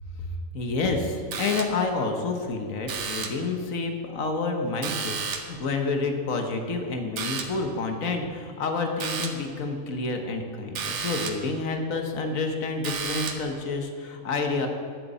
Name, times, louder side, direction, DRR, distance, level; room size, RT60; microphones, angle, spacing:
voice 1, 0.5-14.7, left 3 dB, 75° left, 4 dB, 1.4 m, -29 dB
sound 1, 1.3-2.0 2.9-3.5 4.8-5.6 7.2-7.7 9.0-9.5 10.7-11.5 12.8-13.6, right 5 dB, 60° right, 1.1 m, -33 dB
8.1 x 6.6 x 8.3 m, 2.2 s
omnidirectional pair, 1.4 m